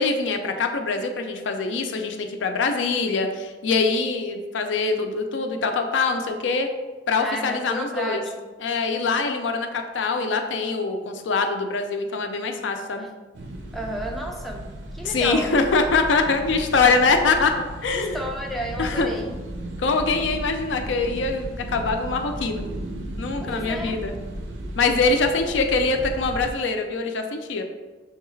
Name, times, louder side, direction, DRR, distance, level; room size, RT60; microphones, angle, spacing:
voice 1, 0.0-6.7 7.1-8.2 8.6-13.1 15.0-17.5 17.8-18.2 18.8-19.1 19.8-22.6 23.2-24.1 24.8-27.6, left 4 dB, 75° left, 5 dB, 0.4 m, -23 dB
voice 2, 7.2-8.3 13.0-13.1 13.7-15.6 17.9-19.4 23.4-24.0, equal, ahead, 0 dB, 0.3 m, -32 dB
sound 1, 13.3-26.5, right 1 dB, 70° right, 0.6 m, -35 dB
6.3 x 2.3 x 3.1 m, 1.3 s
head